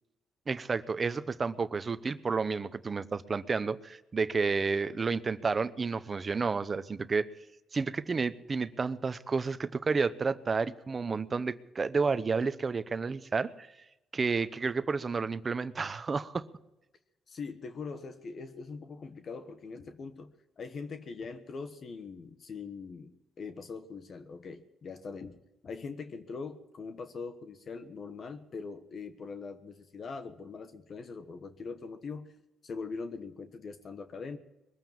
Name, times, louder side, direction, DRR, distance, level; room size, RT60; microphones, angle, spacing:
voice 1, 0.5-7.3 7.7-13.7 14.1-16.5, right 4 dB, 35° right, 14 dB, 0.8 m, -31 dB
voice 2, 17.3-32.3 32.6-34.4, left 4 dB, 50° left, 9 dB, 1.3 m, -42 dB
21.5 x 9.0 x 7.3 m, 0.95 s
cardioid pair, 90°, 0 cm